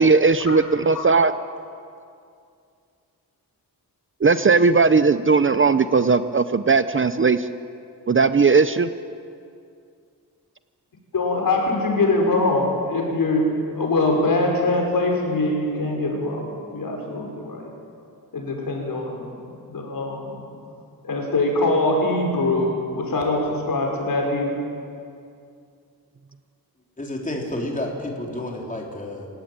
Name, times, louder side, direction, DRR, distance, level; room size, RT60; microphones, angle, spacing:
voice 1, 0.0-1.3 4.2-7.5 8.1-8.9, right 4 dB, 35° right, 12 dB, 0.7 m, -17 dB
voice 2, 11.1-17.7 18.3-19.3 19.7-20.4 21.0-24.7, left 2 dB, 60° left, 1 dB, 5.8 m, -23 dB
voice 3, 27.0-29.3, left 1 dB, 20° left, 0 dB, 3.8 m, -30 dB
28.0 x 16.5 x 8.9 m, 2.4 s
wide cardioid pair, 145°, 37 cm